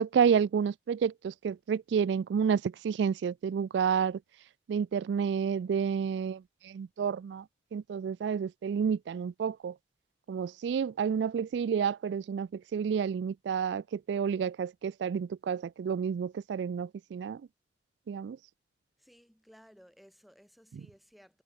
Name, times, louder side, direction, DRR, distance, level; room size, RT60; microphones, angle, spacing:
voice 1, 0.0-4.2 4.7-7.4 7.7-9.7 10.3-17.4 18.1-18.4, right 7 dB, 80° right, 0.3 m, -30 dB
voice 2, 19.0-21.4, equal, ahead, 4.4 m, -58 dB
head